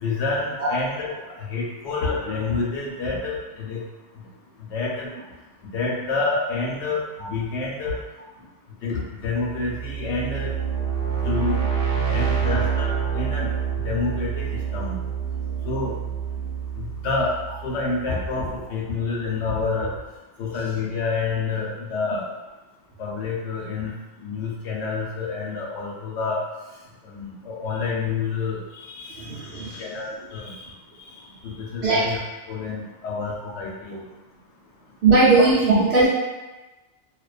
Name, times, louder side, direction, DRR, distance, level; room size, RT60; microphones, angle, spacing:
voice 1, 0.0-1.1 1.4-3.8 4.7-5.1 5.7-7.0 7.3-8.0 8.8-10.5 11.2-11.6 12.1-13.5 13.8-14.5 14.7-15.0 15.6-15.9 16.8-17.3 17.6-19.9 20.4-22.2 23.0-23.9 24.2-26.4 27.0-29.3 29.6-30.6 31.4-32.2 32.5-34.0, left 4 dB, 85° left, -3 dB, 0.9 m, -28 dB
sound 1, 9.4-18.2, right 7 dB, 85° right, 0.9 m, -27 dB
voice 2, 29.2-29.8 31.8-32.0 35.0-36.1, right 3 dB, 60° right, -11 dB, 0.7 m, -18 dB
2.3 x 2.2 x 2.3 m, 1.1 s
omnidirectional pair, 1.2 m